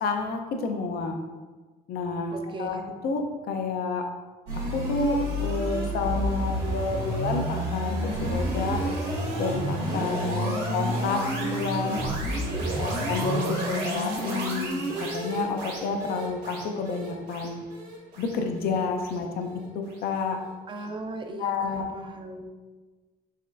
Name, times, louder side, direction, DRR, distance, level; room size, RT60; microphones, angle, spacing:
voice 1, 0.0-1.2 1.9-4.0 4.5-8.8 9.4-12.0 12.8-17.6 18.2-19.5 19.7-20.4 21.4-21.9, left 4 dB, 65° left, 4 dB, 0.6 m, -30 dB
voice 2, 2.3-2.8 9.9-10.6 12.5-13.1 20.7-22.5, right 2 dB, 30° right, 4 dB, 0.4 m, -38 dB
sound 1, 4.5-19.6, right 1 dB, 80° right, 1.4 m, -30 dB
4.1 x 3.1 x 2.5 m, 1.3 s
cardioid pair, 110°, 17 cm